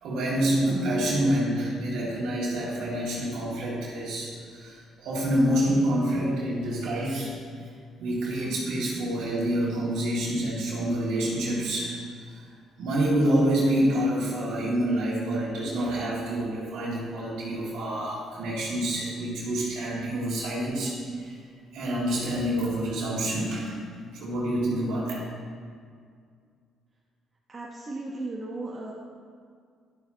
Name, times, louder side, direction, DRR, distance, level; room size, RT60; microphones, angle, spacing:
voice 1, 0.0-7.4 8.0-11.9 12.3-12.4 12.8-21.4 21.7-23.8 24.1-25.2, right 1 dB, 80° right, -6 dB, 2.2 m, -27 dB
voice 2, 27.5-28.9, right 2 dB, 30° right, -4 dB, 1.1 m, -35 dB
11.5 x 7.3 x 2.9 m, 2.1 s
cardioid pair, 90°, 0 cm